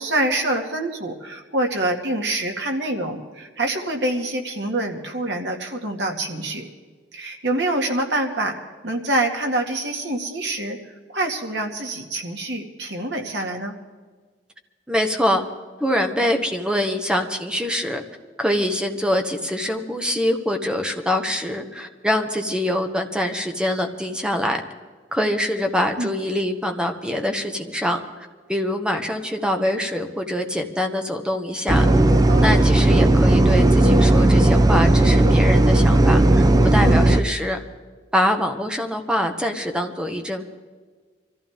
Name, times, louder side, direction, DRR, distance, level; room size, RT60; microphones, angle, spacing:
voice 1, 0.0-6.6 7.1-8.6 8.8-10.8 11.1-13.7 26.0-26.1 32.3-32.7 36.8-37.0, right 2 dB, 70° right, 2 dB, 2.1 m, -25 dB
voice 2, 14.9-15.4 15.8-18.0 18.4-24.6 25.1-31.8 32.4-36.2 36.6-37.6 38.1-40.5, equal, 5° right, 4 dB, 1.3 m, -24 dB
sound 1, 31.7-37.2, right 1 dB, 20° right, 0.6 m, -15 dB
24.5 x 14.5 x 3.6 m, 1.5 s
head